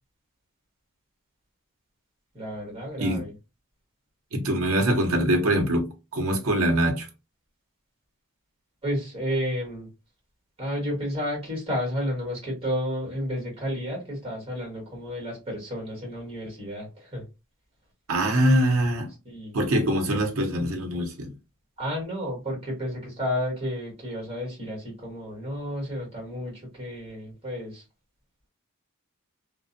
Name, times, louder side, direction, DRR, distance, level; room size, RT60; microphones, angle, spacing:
voice 1, 2.3-3.3 8.8-9.9 10.6-17.2 19.2-19.5 21.8-27.8, equal, 25° right, 1.4 m, -31 dB
voice 2, 4.3-7.1 18.1-19.1 19.5-21.3, right 1 dB, 90° right, 0.7 m, -23 dB
2.5 x 2.1 x 2.5 m
head